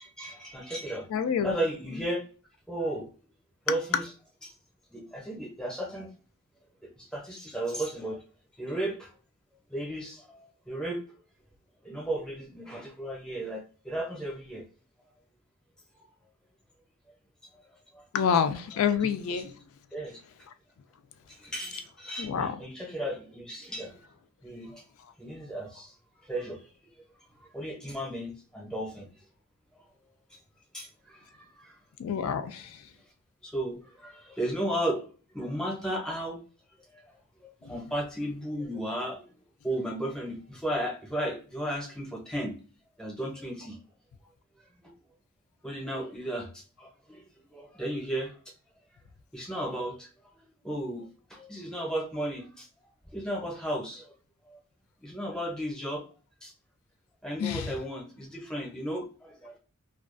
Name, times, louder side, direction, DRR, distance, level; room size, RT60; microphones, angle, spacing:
voice 1, 0.0-1.1 1.4-2.2 2.7-3.1 3.7-4.1 4.4-4.5 4.9-6.1 6.8-8.2 8.6-9.1 9.7-11.0 11.8-14.6 17.9-18.0 19.9-20.2 21.3-24.0 24.4-24.8 25.2-25.9 26.2-26.6 27.4-29.1 30.7-31.8 33.4-35.1 35.3-36.4 36.9-37.0 37.4-39.2 39.6-42.5 43.0-43.8 44.8-44.9 45.6-47.2 47.5-48.5 49.3-50.1 50.3-51.0 51.3-52.7 53.1-54.1 54.5-54.6 55.0-56.0 56.4-56.5 57.2-59.6, right 1 dB, 5° left, -1 dB, 0.7 m, -34 dB
voice 2, 1.1-1.6 1.9-2.0 18.1-19.5 22.2-22.5 32.0-32.8 37.6-37.7 57.4-57.7, left 7 dB, 75° left, 8 dB, 0.3 m, -28 dB
2.3 x 2.3 x 2.4 m, 0.39 s
head